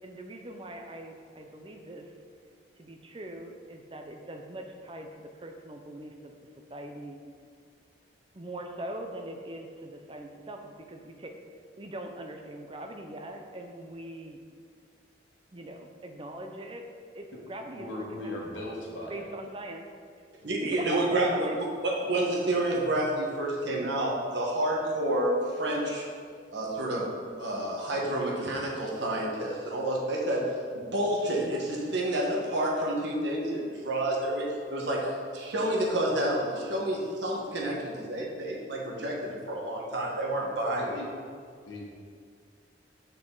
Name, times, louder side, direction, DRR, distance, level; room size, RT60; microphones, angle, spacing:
voice 1, 0.0-2.1 2.8-5.1 5.3-6.4 6.7-7.2 8.3-14.4 15.5-16.8 17.1-18.7 19.1-19.8 20.6-21.6, right 1 dB, 25° right, 4 dB, 0.6 m, -41 dB
voice 2, 17.8-19.2 20.4-20.5 40.8-41.0 41.7-41.8, left 1 dB, 90° left, -3 dB, 1.6 m, -38 dB
voice 3, 20.4-26.1 26.5-40.9, right 1 dB, 70° right, -2 dB, 1.4 m, -29 dB
6.8 x 6.0 x 3.9 m, 2.1 s
head